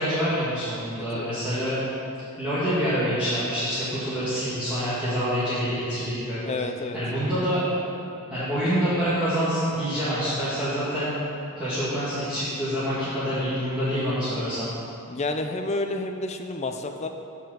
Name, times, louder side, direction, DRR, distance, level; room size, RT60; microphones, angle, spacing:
voice 1, 0.0-1.8 2.4-6.4 6.9-7.6 8.3-11.1 11.6-14.7, equal, 5° right, -14 dB, 1.7 m, -26 dB
voice 2, 6.5-7.0 15.1-17.1, left 2 dB, 30° left, 6 dB, 0.5 m, -30 dB
7.1 x 5.5 x 7.3 m, 2.7 s
head